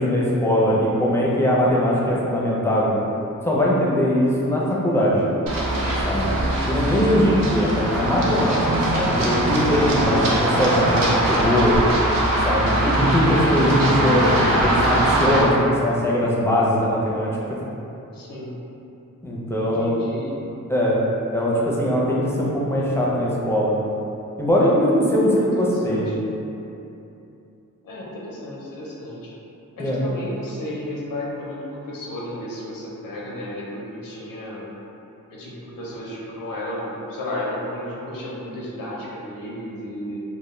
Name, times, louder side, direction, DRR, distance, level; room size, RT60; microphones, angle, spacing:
voice 1, 0.0-2.9 3.4-5.2 6.0-6.3 6.6-8.6 8.9-11.8 12.4-17.4 19.2-20.0 20.7-21.0 21.3-23.7 24.4-26.1 29.8-30.0, equal, 10° left, -6 dB, 0.5 m, -21 dB
Run, 5.5-15.4, right 1 dB, 80° right, 0.5 m, -21 dB
voice 2, 7.0-8.0 18.1-18.6 19.6-20.4 25.2-26.2 27.8-29.3 29.8-34.7 35.3-40.2, left 1 dB, 90° left, -5 dB, 0.5 m, -33 dB
2.1 x 2.1 x 3.1 m, 2.8 s
cardioid pair, 70°, 33 cm